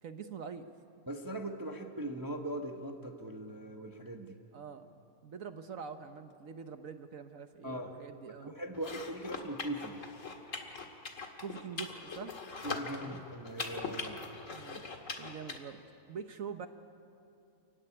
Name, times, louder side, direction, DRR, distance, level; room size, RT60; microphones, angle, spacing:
voice 1, 0.0-0.7 4.5-4.9 5.2-8.5 11.4-12.3 13.0-13.2 14.5-14.8 15.2-15.8 16.1-16.7, right 6 dB, 65° right, 8 dB, 1.3 m, -44 dB
voice 2, 1.1-4.4 7.6-8.0 8.3-10.0 12.6-14.2, right 1 dB, 15° right, 3 dB, 1.1 m, -40 dB
sound 1, 8.7-15.6, left 4 dB, 55° left, 2.2 m, -42 dB
29.0 x 15.0 x 10.0 m, 2.8 s
omnidirectional pair, 1.6 m